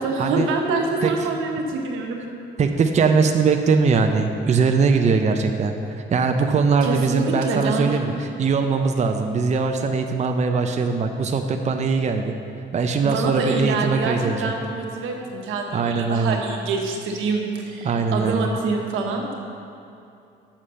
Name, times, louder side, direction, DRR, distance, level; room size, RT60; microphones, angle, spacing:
voice 1, 0.0-2.3 6.8-8.0 13.0-19.3, right 3 dB, 90° right, 1 dB, 1.1 m, -26 dB
voice 2, 2.6-5.7 6.1-12.4 12.7-14.5 15.7-16.4 17.8-18.5, right 5 dB, 35° right, 5 dB, 0.6 m, -21 dB
7.2 x 6.4 x 5.6 m, 2.6 s
cardioid pair, 90°, 20 cm